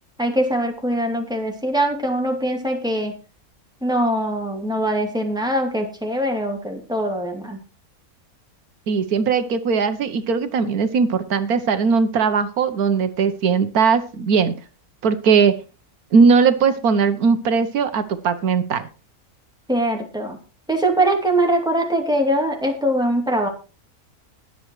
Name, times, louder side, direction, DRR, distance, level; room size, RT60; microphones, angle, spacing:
voice 1, 0.2-3.1 3.8-7.6 19.7-20.4 20.7-23.5, right 1 dB, 5° right, 2 dB, 2.7 m, -22 dB
voice 2, 8.9-14.5 15.0-15.6 16.1-18.9, right 5 dB, 75° right, 10 dB, 1.4 m, -19 dB
21.0 x 7.8 x 3.1 m, 0.33 s
omnidirectional pair, 1.6 m